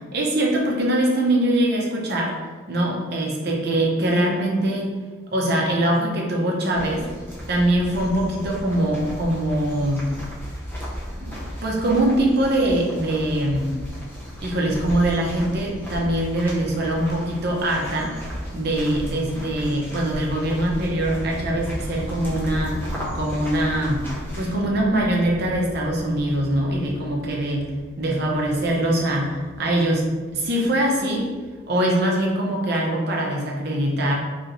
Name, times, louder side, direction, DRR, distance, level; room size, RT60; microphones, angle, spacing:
voice 1, 0.1-2.4 2.7-4.9 5.3-7.0 7.5-10.0 11.2-11.4 11.6-13.7 14.4-18.1 18.5-22.8 23.1-24.0 24.4-27.7 28.0-30.1 30.3-31.3 31.7-34.1, right 1 dB, 50° right, -2 dB, 0.6 m, -22 dB
sound 1, 6.7-24.6, equal, 10° left, 0.6 m, -35 dB
sound 2, 20.2-31.6, equal, 65° left, 0.6 m, -37 dB
3.2 x 2.9 x 2.6 m, 1.4 s
head